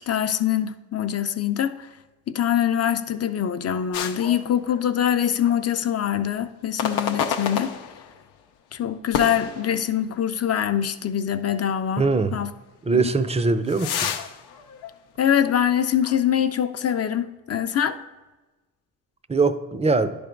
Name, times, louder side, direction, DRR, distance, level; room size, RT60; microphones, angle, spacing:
voice 1, 0.1-1.9 2.3-7.7 8.7-12.0 12.3-12.5 12.9-13.1 15.2-18.0, left 9 dB, 40° left, 10 dB, 0.6 m, -24 dB
sound 1, 3.9-5.1 5.4-5.6 6.8-8.3 9.1-10.3 10.7-10.8 11.5-11.6 13.0-15.7 16.0-16.2, left 7 dB, 90° left, 0.6 m, -30 dB
voice 2, 12.0-12.4 12.8-14.1 19.3-20.2, right 3 dB, 15° right, 12 dB, 0.5 m, -22 dB
10.5 x 3.5 x 5.1 m, 1.1 s
cardioid pair, 70°, 37 cm